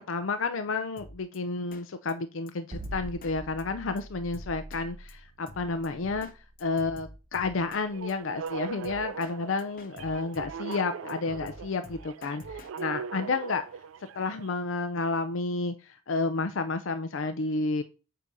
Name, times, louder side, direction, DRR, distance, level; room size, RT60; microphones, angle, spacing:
voice 1, 0.0-6.3 6.6-13.6 14.1-17.8, left 3 dB, 85° left, 9 dB, 0.6 m, -31 dB
Drum kit, 1.0-1.4 1.7-1.8 2.1-2.2 2.5-2.6 2.8-3.3 3.6-3.7 4.0-4.1 4.3-4.8 5.1-5.2 5.5-6.3 6.6-7.8 8.1-8.2 8.5-8.6 8.8-9.3 9.6-10.8 11.1-12.8, left 2 dB, 45° left, 0.8 m, -47 dB
sound 1, 2.7-8.9, right 1 dB, 40° right, 0.8 m, -44 dB
sound 2, 7.7-14.5, right 6 dB, 90° right, 0.4 m, -40 dB
8.3 x 2.8 x 5.2 m, 0.33 s
head